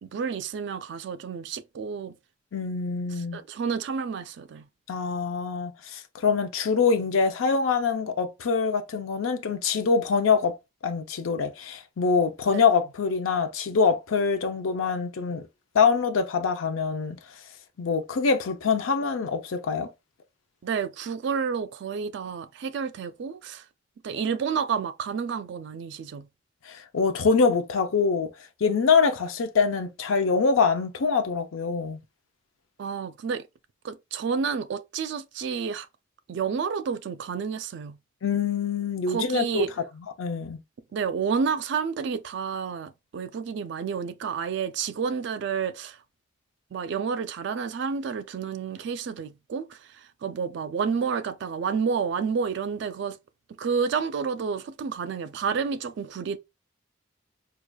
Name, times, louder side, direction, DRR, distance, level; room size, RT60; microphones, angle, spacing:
voice 1, 0.0-2.1 3.3-4.7 20.6-23.6 24.0-26.3 32.8-33.5 33.8-35.9 36.3-38.0 39.1-39.7 40.9-46.0 46.7-49.8 50.2-53.2 53.6-56.4, right 6 dB, 60° right, 0.3 m, -30 dB
voice 2, 2.5-3.4 4.9-10.6 10.8-15.5 15.7-17.2 17.8-19.9 26.7-28.3 28.6-32.0 38.2-39.7 40.2-40.6, left 5 dB, 90° left, 0.5 m, -24 dB
4.7 x 2.4 x 2.2 m
head